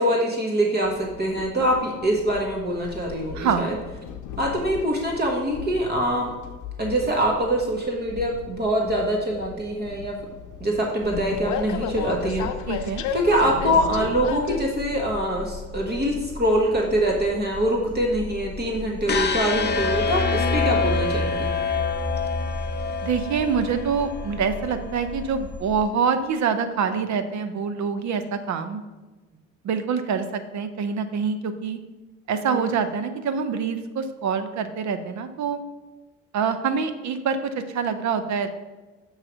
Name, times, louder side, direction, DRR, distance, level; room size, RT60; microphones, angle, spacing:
voice 1, 0.0-3.7 4.4-6.3 6.8-10.1 10.6-21.5 32.5-32.7, right 1 dB, 35° right, -1 dB, 1.3 m, -24 dB
Train, 0.8-14.6, left 7 dB, 80° left, 0.6 m, -35 dB
voice 2, 3.3-3.7 12.7-13.0 23.0-28.8 29.6-31.8 32.3-35.6 36.3-38.6, right 6 dB, 65° right, 9 dB, 0.8 m, -25 dB
sound 1, 11.0-25.8, left 3 dB, 5° right, 2.4 m, -38 dB
sound 2, 19.1-25.1, left 4 dB, 35° left, 0.6 m, -26 dB
7.5 x 3.3 x 6.2 m, 1.2 s
cardioid pair, 90°, 30 cm